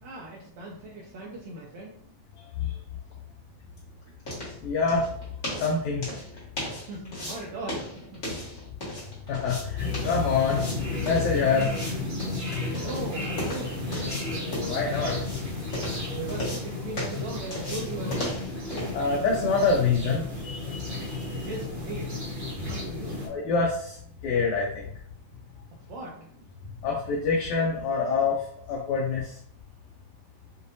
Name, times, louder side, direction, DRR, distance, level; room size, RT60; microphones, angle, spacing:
voice 1, 0.0-2.0 6.9-8.4 11.6-11.7 12.7-13.9 16.1-18.3 21.3-22.2 22.6-23.2 25.9-26.3, right 2 dB, 75° right, -2 dB, 1.8 m, -38 dB
sound 1, 3.1-20.9, left 1 dB, 30° left, 1.6 m, -38 dB
voice 2, 4.6-5.0 5.6-6.1 9.3-10.6 11.0-11.7 12.4-12.9 14.6-15.2 18.9-21.5 23.2-24.0 24.2-24.9 26.8-28.4 28.7-29.3, left 4 dB, 75° left, -3 dB, 1.9 m, -26 dB
sound 2, 9.8-23.3, left 2 dB, 35° right, 1.1 m, -33 dB
6.7 x 2.5 x 2.6 m, 0.62 s
omnidirectional pair, 3.6 m